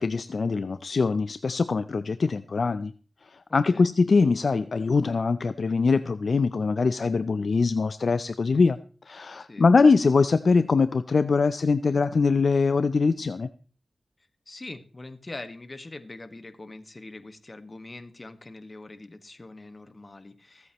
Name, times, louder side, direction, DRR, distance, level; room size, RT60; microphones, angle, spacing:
voice 1, 0.0-2.9 3.3-8.8 9.1-13.5, left 4 dB, 70° left, 13 dB, 0.5 m, -23 dB
voice 2, 14.5-20.7, left 2 dB, 40° left, 10 dB, 1.5 m, -43 dB
24.0 x 8.2 x 3.0 m, 0.39 s
cardioid pair, 45°, 0 cm